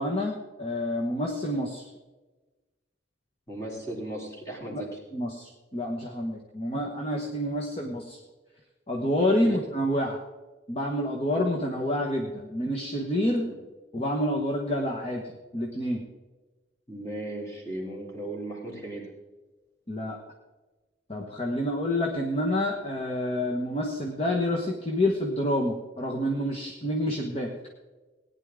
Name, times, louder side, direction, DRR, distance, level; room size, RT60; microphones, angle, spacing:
voice 1, 0.0-1.9 4.7-4.8 5.1-8.2 8.9-10.2 10.7-13.5 13.9-16.0 19.9-20.2 21.1-27.6, left 1 dB, 35° left, 0 dB, 1.2 m, -28 dB
voice 2, 3.5-4.9 9.4-9.6 13.3-13.5 16.9-19.1, right 1 dB, 15° left, -3 dB, 3.2 m, -36 dB
18.0 x 10.0 x 3.7 m, 1.2 s
head